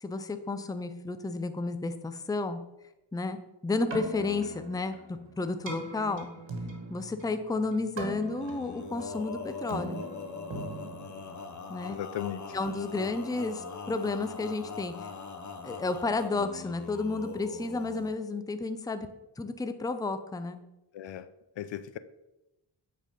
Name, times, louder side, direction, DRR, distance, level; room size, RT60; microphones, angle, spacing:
voice 1, 0.0-2.6 3.1-3.4 3.6-6.3 6.9-10.0 11.7-12.0 12.5-15.1 15.6-19.1 19.4-20.6, left 3 dB, 10° left, 0.5 m, -32 dB
Keyboard (musical), 3.7-11.9, right 2 dB, 70° right, 1.7 m, -41 dB
Male singing, 8.3-18.2, left 5 dB, 40° left, 0.9 m, -41 dB
voice 2, 11.9-12.6 20.9-21.3 21.6-22.0, left 11 dB, 70° left, 0.5 m, -37 dB
8.9 x 4.2 x 5.2 m
wide cardioid pair, 90°, 47 cm